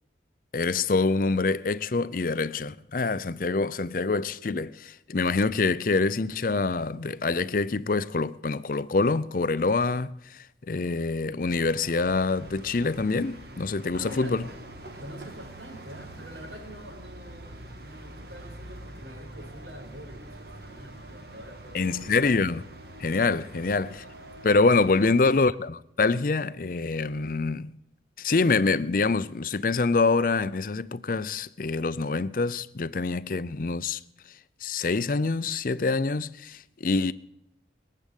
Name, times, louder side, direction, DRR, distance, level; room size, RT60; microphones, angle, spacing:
voice 1, 0.5-14.5 21.7-22.7 23.0-24.0 24.4-27.7 28.2-34.0 34.6-37.1, left 3 dB, 50° left, 0.5 m, -25 dB
sound 1, 11.5-25.1, right 1 dB, 55° right, 1.8 m, -45 dB
voice 2, 13.9-14.4 15.0-22.2 24.9-25.2, equal, 75° right, 4.8 m, -45 dB
22.0 x 7.7 x 8.3 m
head